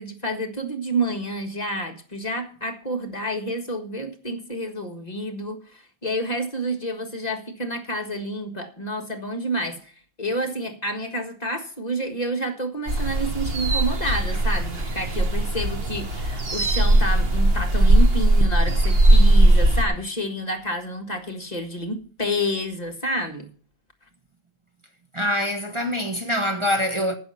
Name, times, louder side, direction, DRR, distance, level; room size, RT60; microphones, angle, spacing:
voice 1, 0.0-9.9 10.2-23.5, equal, 35° left, 1.8 m, -29 dB
sound 1, 12.9-19.9, right 1 dB, 60° right, 1.6 m, -19 dB
voice 2, 25.1-27.2, left 1 dB, 25° right, 1.3 m, -24 dB
15.0 x 6.4 x 5.7 m
omnidirectional pair, 1.1 m